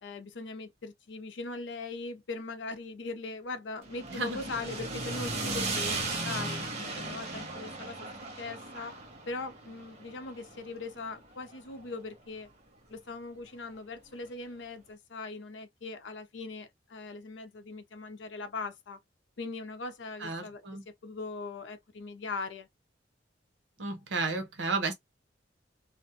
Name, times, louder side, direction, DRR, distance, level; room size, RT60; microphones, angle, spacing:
voice 1, 0.0-6.6 6.9-8.1 8.4-9.0 9.3-12.5 12.9-19.0 19.4-20.6 21.0-22.7, left 3 dB, 80° left, 0.6 m, -40 dB
sound 1, 3.8-12.1, right 2 dB, 35° right, 0.8 m, -37 dB
voice 2, 20.2-20.8 23.8-24.9, right 3 dB, 80° right, 0.9 m, -32 dB
2.4 x 2.1 x 2.8 m
head